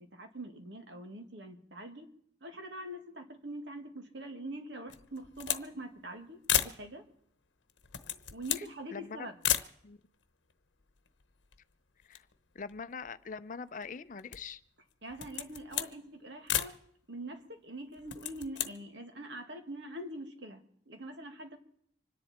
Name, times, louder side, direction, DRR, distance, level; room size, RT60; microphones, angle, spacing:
voice 1, 0.1-2.1 2.4-7.0 8.3-9.4 15.0-16.8 17.1-21.6, right 1 dB, 70° right, 5 dB, 2.1 m, -44 dB
sound 1, 4.9-5.7 6.0-6.1 6.4-6.8 7.7-8.7 9.4-9.7 10.5-10.6 10.8-11.7 12.0-13.3 13.8-14.6 15.1-15.9 16.5-16.8 17.9-18.7, left 11 dB, 80° left, 0.9 m, -34 dB
voice 2, 8.9-9.3 9.8-10.0 12.1-12.3 12.5-14.6, left 5 dB, 45° left, 13 dB, 0.5 m, -43 dB
26.0 x 10.5 x 4.4 m, 0.66 s
head